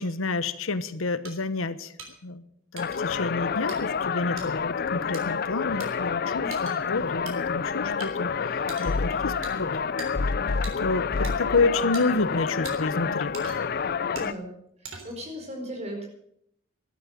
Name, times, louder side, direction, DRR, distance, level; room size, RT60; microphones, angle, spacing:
voice 1, 0.0-1.9 2.2-2.4 2.7-9.7 10.8-13.4, left 3 dB, 85° left, 14 dB, 1.0 m, -29 dB
sound 1, 1.2-1.3 2.0-2.1 2.8-3.0 3.7-3.8 4.4-4.5 5.1-5.2 5.8-5.9 6.5-6.8 7.3-7.4 8.0-8.1 8.7-8.9 9.4-9.5 10.0-10.1 10.6-10.7 11.2-11.3 11.9-12.0 12.6-12.8 13.3-13.7 14.2-14.3 14.8-15.2, right 5 dB, 85° right, 3.6 m, -41 dB
sound 2, 2.8-14.3, left 5 dB, 50° left, 0.5 m, -28 dB
voice 2, 14.1-14.5 14.8-16.1, equal, 30° right, 2 dB, 4.8 m, -37 dB
13.0 x 12.0 x 7.5 m, 0.71 s
head